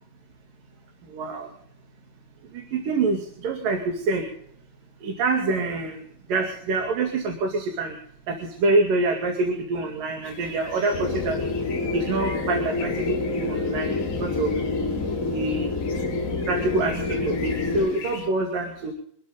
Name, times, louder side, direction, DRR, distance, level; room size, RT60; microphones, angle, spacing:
voice 1, 1.1-1.5 2.5-4.2 5.0-6.0 6.3-8.0 8.3-11.4 11.9-13.9 14.2-14.5 15.3-15.8 16.5-18.9, right 3 dB, 65° right, 2 dB, 4.0 m, -26 dB
sound 1, 10.2-18.3, left 6 dB, 45° left, 2.8 m, -41 dB
sound 2, 10.9-17.9, left 3 dB, 20° left, 3.0 m, -27 dB
26.0 x 13.0 x 3.9 m, 0.67 s
omnidirectional pair, 4.2 m